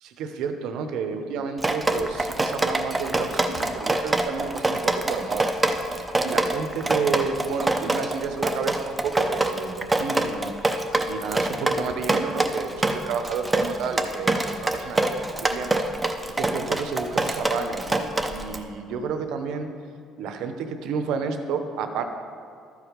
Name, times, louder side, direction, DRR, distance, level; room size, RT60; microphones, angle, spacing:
voice 1, 0.0-10.8 11.1-15.8 16.4-19.7 20.2-22.0, right 5 dB, 75° right, 7 dB, 0.8 m, -31 dB
Drip, 1.6-18.6, right 2 dB, 10° right, 0.5 m, -25 dB
13.0 x 4.9 x 5.1 m, 2.4 s
cardioid pair, 150°, 0 cm